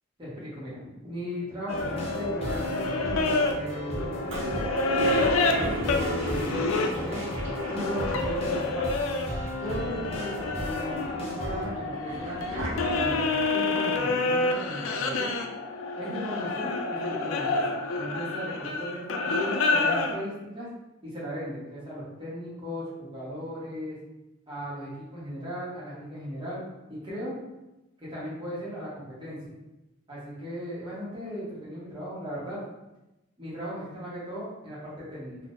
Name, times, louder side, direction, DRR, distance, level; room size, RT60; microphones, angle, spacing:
voice 1, 0.2-3.2 3.5-4.6 5.0-8.9 9.6-13.3 13.5-15.3 16.0-17.6 17.9-20.7 21.0-24.0 24.5-26.6 26.9-27.3 28.0-29.5 30.1-32.6 33.4-35.4, equal, 25° right, -8 dB, 1.2 m, -37 dB
sound 1, 1.7-9.3 9.7-20.2, left 3 dB, 80° left, 0.4 m, -28 dB
sound 2, 1.7-11.6, left 1 dB, 30° left, 0.7 m, -35 dB
Toilet flush, 4.3-8.6 8.9-9.0 9.2-10.0 10.6-13.4, equal, 65° right, 0.6 m, -36 dB
3.7 x 2.5 x 2.5 m, 0.98 s
head